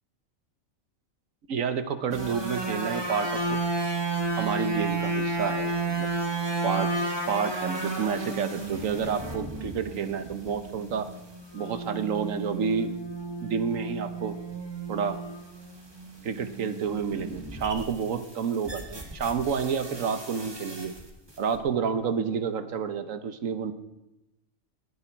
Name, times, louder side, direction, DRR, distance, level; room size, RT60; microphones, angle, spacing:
voice 1, 1.5-3.6 4.4-6.1 6.6-6.9 7.3-11.1 11.5-12.9 13.4-14.4 14.9-15.2 16.2-20.9 21.4-23.7, right 6 dB, 75° right, 10 dB, 1.4 m, -29 dB
sound 1, 2.1-21.0 21.3-21.6, right 3 dB, 20° right, 1.9 m, -33 dB
19.5 x 10.0 x 4.6 m, 0.92 s
omnidirectional pair, 1.4 m